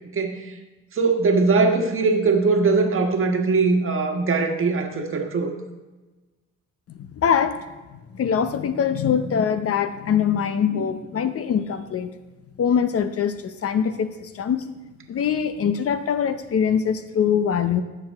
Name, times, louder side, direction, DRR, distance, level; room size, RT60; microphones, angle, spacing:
voice 1, 0.1-0.5 0.9-5.5 10.7-10.9, right 4 dB, 45° right, 4 dB, 1.4 m, -21 dB
voice 2, 6.9-7.7 7.9-12.1 12.6-14.7 15.1-17.8, left 7 dB, 50° left, 11 dB, 0.7 m, -23 dB
15.0 x 7.0 x 3.5 m, 1.2 s
cardioid pair, 90°, 30 cm